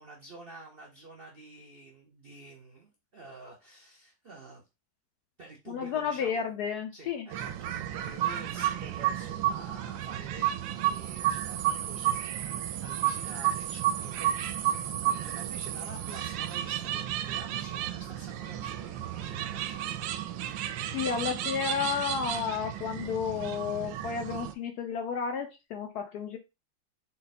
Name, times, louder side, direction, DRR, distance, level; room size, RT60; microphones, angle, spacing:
voice 1, 0.0-4.6 5.4-6.4 6.9-20.1, right 2 dB, 60° right, -1 dB, 0.5 m, -49 dB
voice 2, 5.7-7.3 20.9-26.4, left 7 dB, 70° left, 5 dB, 0.9 m, -32 dB
sound 1, 7.3-24.5, right 12 dB, 75° right, 1.2 m, -32 dB
4.0 x 2.2 x 4.0 m, 0.24 s
omnidirectional pair, 2.1 m